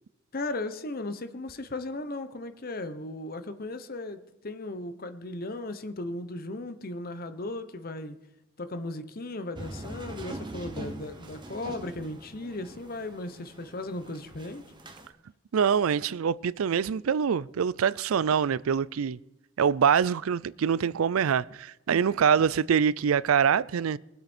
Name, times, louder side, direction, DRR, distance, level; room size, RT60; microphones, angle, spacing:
voice 1, 0.3-8.2 8.6-14.6, left 2 dB, 45° left, 0.9 m, -36 dB
sound 1, 9.6-15.1, right 1 dB, 20° right, 1.2 m, -43 dB
voice 2, 15.5-19.2 19.6-24.0, right 7 dB, 90° right, 0.4 m, -24 dB
22.5 x 8.1 x 4.4 m
head